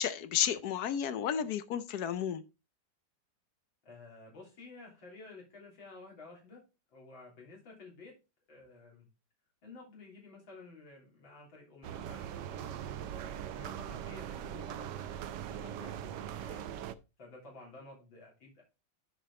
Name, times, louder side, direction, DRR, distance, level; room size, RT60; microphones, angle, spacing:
voice 1, 0.0-2.4, left 9 dB, 65° left, 1.1 m, -32 dB
voice 2, 3.8-6.6 6.9-8.1 8.5-9.1 9.6-16.7 17.2-18.6, left 3 dB, 85° left, 4.1 m, -53 dB
sound 1, 11.8-17.0, right 10 dB, 70° right, 1.2 m, -41 dB
9.8 x 5.3 x 3.7 m
omnidirectional pair, 2.1 m